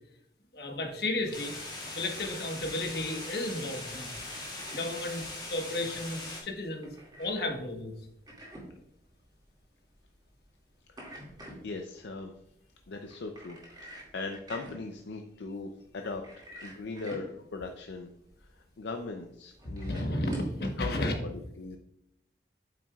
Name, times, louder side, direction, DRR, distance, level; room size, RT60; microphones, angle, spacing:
voice 1, 0.5-1.5 1.9-4.1 4.7-6.9 7.2-8.0 19.6-21.1, left 1 dB, 60° left, 3 dB, 1.2 m, -33 dB
sound 1, 1.1-20.6, right 1 dB, 25° right, 2.2 m, -50 dB
sound 2, 1.3-6.4, left 2 dB, 25° left, 1.9 m, -40 dB
voice 2, 11.6-12.3 12.9-16.2 16.6-18.1 18.8-20.0 20.8-21.8, left 3 dB, 75° left, 4 dB, 0.5 m, -39 dB
8.6 x 6.0 x 2.3 m, 0.79 s
head